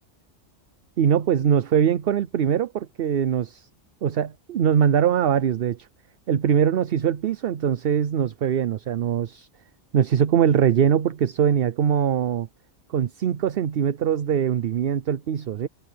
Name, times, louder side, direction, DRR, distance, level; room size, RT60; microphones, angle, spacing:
voice 1, 1.0-3.7 4.0-5.9 6.3-9.5 9.9-12.5 12.9-15.7, right 8 dB, 60° right, 0.8 m, -22 dB
omnidirectional pair, 1.2 m